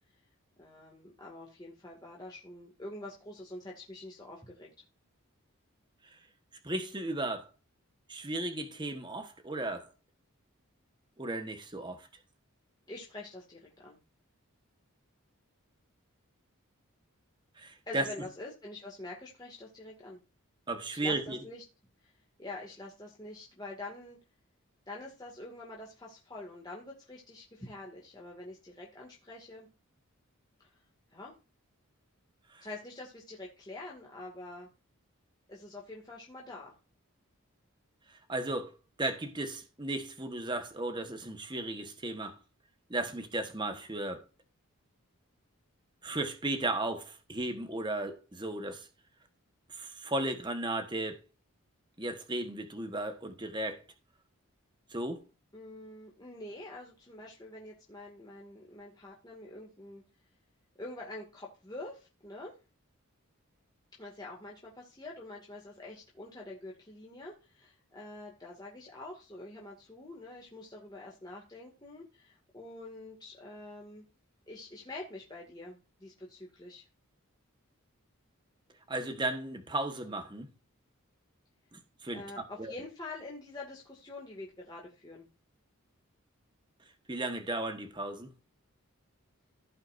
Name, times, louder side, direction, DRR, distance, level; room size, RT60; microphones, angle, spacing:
voice 1, 0.6-4.7 12.9-14.0 17.9-20.2 20.9-21.6 22.4-24.2 24.9-29.7 30.6-30.7 31.1-31.3 32.6-34.7 35.5-36.8 55.5-60.0 60.8-62.6 64.0-74.0 74.5-76.8 82.1-85.3, left 2 dB, 20° left, 2.2 m, -46 dB
voice 2, 6.6-7.5 8.1-9.9 11.2-12.1 17.6-18.1 20.7-21.4 32.5-32.7 38.3-38.7 39.0-42.4 42.9-44.2 46.0-48.9 49.7-51.2 52.0-53.8 54.9-55.2 78.9-80.5 81.7-82.7 87.1-88.3, right 2 dB, 20° right, 1.3 m, -35 dB
16.0 x 5.8 x 2.6 m
head